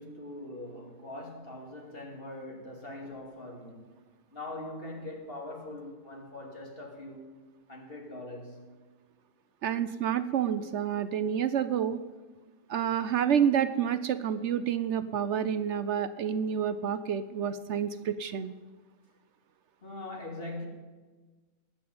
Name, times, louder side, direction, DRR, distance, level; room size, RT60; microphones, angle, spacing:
voice 1, 0.0-3.8 4.3-7.3 7.7-8.7 19.8-20.7, left 1 dB, 45° left, 2.9 m, -42 dB
voice 2, 9.6-12.0 12.7-18.5, right 8 dB, 65° right, 0.9 m, -29 dB
18.5 x 6.3 x 9.4 m
omnidirectional pair, 1.3 m